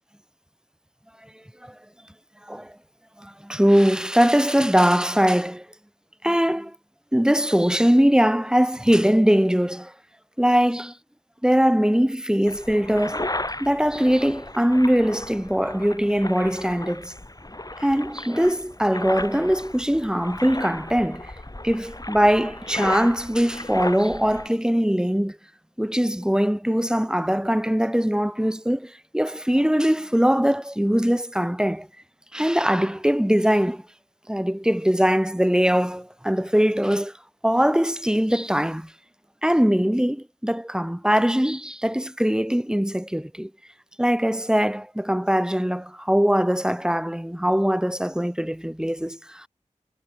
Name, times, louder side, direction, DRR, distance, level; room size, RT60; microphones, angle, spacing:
voice 1, 3.2-5.6 6.2-6.7 7.1-9.9 10.4-10.9 11.4-13.2 13.6-17.1 17.8-21.3 21.6-25.4 25.8-31.9 32.3-33.8 34.3-37.1 37.4-38.9 39.4-43.5 44.0-49.5, equal, 5° right, 1.9 m, -21 dB
sound 1, 12.5-24.5, left 1 dB, 30° left, 3.6 m, -35 dB
wide cardioid pair, 45°, 13 cm